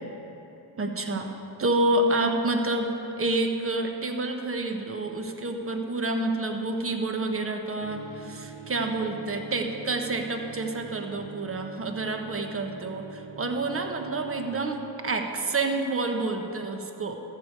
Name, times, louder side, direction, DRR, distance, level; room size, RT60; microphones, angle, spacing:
voice 1, 0.8-1.3 1.6-17.1, right 2 dB, 30° right, 5 dB, 1.2 m, -28 dB
Dist Chr A&D strs, 7.8-14.5, right 6 dB, 55° right, 1.2 m, -44 dB
14.0 x 6.8 x 4.8 m, 3.0 s
supercardioid pair, 60°, 48 cm